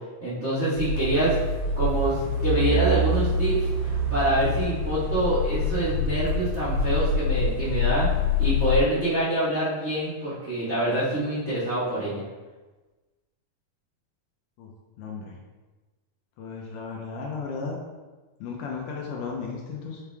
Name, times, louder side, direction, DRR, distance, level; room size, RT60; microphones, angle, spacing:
voice 1, 0.2-1.4 1.8-8.1 8.4-12.2, right 1 dB, 85° right, -11 dB, 0.6 m, -26 dB
sound 1, 0.8-8.8, left 2 dB, 70° right, 2.6 m, -25 dB
voice 2, 15.0-15.4 16.4-17.8 18.4-20.0, left 5 dB, 75° left, 0 dB, 2.1 m, -34 dB
5.7 x 5.2 x 3.3 m, 1.2 s
omnidirectional pair, 3.9 m